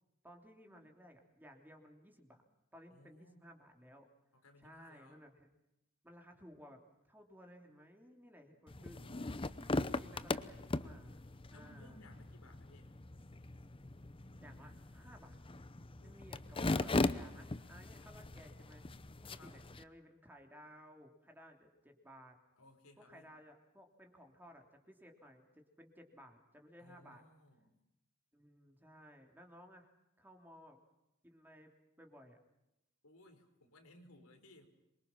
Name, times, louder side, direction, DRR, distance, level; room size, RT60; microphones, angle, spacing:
voice 1, 0.2-2.4 2.7-4.1 4.6-5.5 6.0-6.8 7.1-9.0 9.4-12.0 14.4-15.4 16.0-18.8 19.4-22.4 23.0-27.2 28.3-29.9 30.2-30.8 31.2-31.7 32.0-32.4, equal, 10° right, 3 dB, 3.2 m, -58 dB
voice 2, 2.9-3.4 4.3-5.2 8.8-9.4 11.5-12.9 16.0-16.1 19.3-19.7 22.6-23.3 26.8-27.8 33.0-34.7, left 1 dB, 90° left, 4 dB, 4.8 m, -61 dB
sound 1, 8.7-19.8, left 2 dB, 25° left, 0.8 m, -39 dB
26.5 x 24.0 x 5.9 m, 0.86 s
head